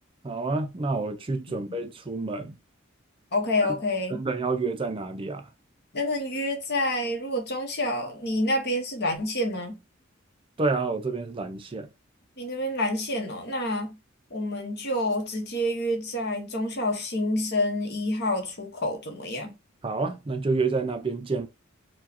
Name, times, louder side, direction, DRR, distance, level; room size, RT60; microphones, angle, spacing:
voice 1, 0.2-2.5 4.1-5.5 10.6-11.9 19.8-21.5, right 3 dB, 25° right, 0.4 m, -28 dB
voice 2, 3.3-4.2 5.9-9.8 12.4-13.9 14.3-19.5, left 1 dB, 55° left, 1.2 m, -28 dB
4.5 x 2.3 x 2.8 m
head